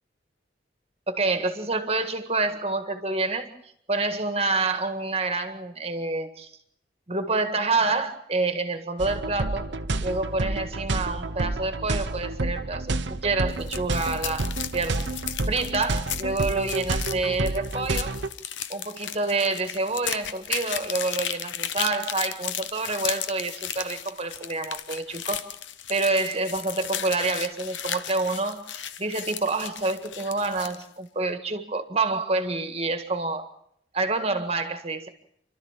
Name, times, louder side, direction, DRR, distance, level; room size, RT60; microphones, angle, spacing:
voice 1, 1.1-3.5 3.9-6.5 7.1-9.7 10.0-13.0 13.2-14.5 14.7-15.1 15.5-18.2 18.7-25.5 25.9-33.5 33.9-35.1, right 3 dB, 35° right, 8 dB, 1.8 m, -27 dB
sound 1, 9.0-18.3, right 2 dB, 70° right, 1.0 m, -29 dB
sound 2, 13.5-30.9, left 10 dB, 80° left, 0.9 m, -35 dB
30.0 x 12.5 x 7.4 m, 0.72 s
head